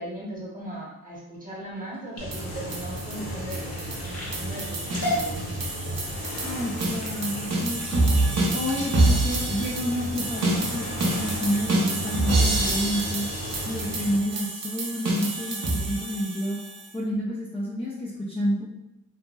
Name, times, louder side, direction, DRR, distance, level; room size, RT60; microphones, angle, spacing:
voice 1, 0.0-5.6, right 1 dB, 25° right, -4 dB, 1.0 m, -38 dB
sound 1, 1.8-10.5 11.0-11.4 11.8-12.2 12.6-12.7 13.0-13.1, left 1 dB, 45° left, 0.9 m, -37 dB
sound 2, 2.2-14.2, equal, 85° left, 0.8 m, -35 dB
sound 3, 2.3-16.9, right 2 dB, 45° right, 0.7 m, -27 dB
voice 2, 6.4-8.0 8.5-10.9 11.1-13.3 13.7-16.6 16.9-18.7, equal, 15° left, -6 dB, 0.5 m, -29 dB
2.8 x 2.6 x 2.2 m, 0.90 s
cardioid pair, 90°, 36 cm